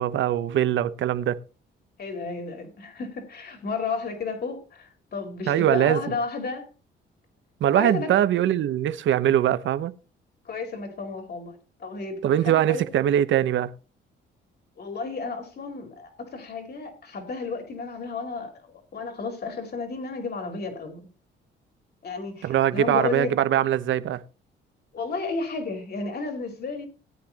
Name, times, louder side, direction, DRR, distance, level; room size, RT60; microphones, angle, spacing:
voice 1, 0.0-1.4 5.5-6.0 7.6-9.9 12.2-13.7 22.4-24.2, right 11 dB, 75° right, 0.9 m, -22 dB
voice 2, 2.0-6.7 7.7-8.1 10.4-12.9 14.8-21.0 22.0-23.3 24.9-26.9, left 4 dB, 55° left, 4.4 m, -33 dB
17.5 x 9.5 x 2.9 m
cardioid pair, 90°, 20 cm